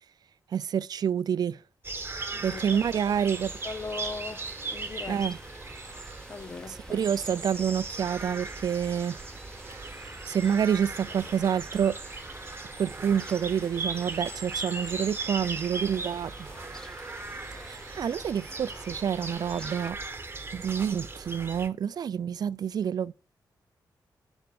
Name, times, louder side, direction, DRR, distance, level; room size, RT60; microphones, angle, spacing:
voice 1, 0.5-1.6 2.1-3.5 5.1-5.4 6.7-9.2 10.3-12.0 12.8-16.5 17.6-20.0 20.5-23.1, right 8 dB, 60° right, 0.4 m, -28 dB
Essex spring woodland, 1.8-21.7, right 3 dB, 30° right, 1.1 m, -38 dB
voice 2, 2.3-2.7 3.6-4.4 4.7-5.2 6.3-7.0, left 4 dB, 35° left, 0.5 m, -39 dB
Fowl, 2.4-19.9, equal, 10° left, 1.4 m, -50 dB
Skateboard, 8.3-18.3, left 3 dB, 85° left, 1.9 m, -61 dB
8.0 x 4.4 x 6.8 m
cardioid pair, 75°, 8 cm